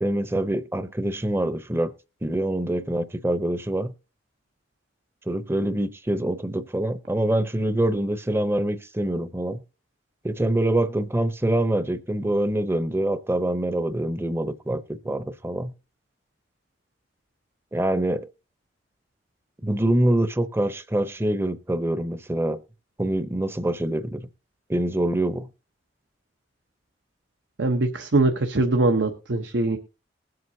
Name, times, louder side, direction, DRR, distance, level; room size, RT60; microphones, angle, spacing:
voice 1, 0.0-1.9 2.2-3.9 5.3-9.6 10.2-15.7 17.7-18.3 19.6-22.6 23.0-24.3 24.7-25.5, right 1 dB, 15° right, 0.7 m, -25 dB
voice 2, 27.6-29.8, right 2 dB, 75° right, 1.0 m, -22 dB
20.5 x 7.8 x 2.7 m
head